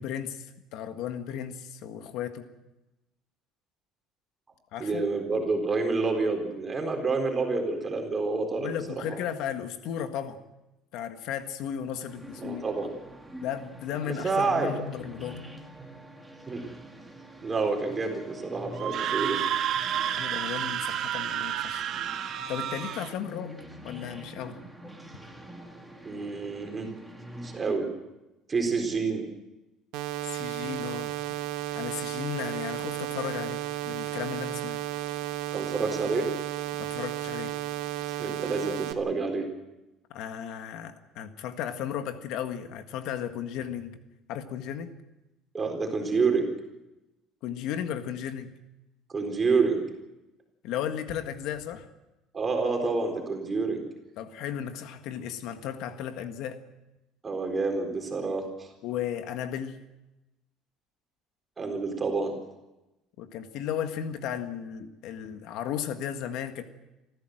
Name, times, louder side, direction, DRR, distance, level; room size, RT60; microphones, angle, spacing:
voice 1, 0.0-2.4 4.7-5.0 8.5-10.4 10.9-12.6 13.4-15.4 20.2-21.9 22.5-23.5 23.8-24.6 30.2-31.4 31.8-34.8 36.8-37.6 40.1-44.0 44.3-44.9 47.4-48.5 50.6-51.9 54.2-56.6 58.8-59.8 63.2-66.6, left 9 dB, 60° left, 7 dB, 1.7 m, -35 dB
voice 2, 4.8-8.7 9.1-9.2 12.4-12.9 14.0-14.7 16.5-16.7 17.4-19.4 26.0-26.9 27.4-27.9 28.5-29.2 35.5-36.3 38.1-39.5 45.5-46.5 49.1-49.8 52.3-53.8 57.2-58.7 61.6-62.3, right 4 dB, 20° right, 4 dB, 4.1 m, -28 dB
sound 1, 12.1-27.7, equal, ahead, 2.3 m, -45 dB
Screaming, 18.8-23.1, right 10 dB, 45° right, 1.6 m, -30 dB
sound 2, 29.9-38.9, right 15 dB, 75° right, 1.4 m, -33 dB
26.5 x 14.5 x 7.8 m, 0.99 s
cardioid pair, 165°, 0 cm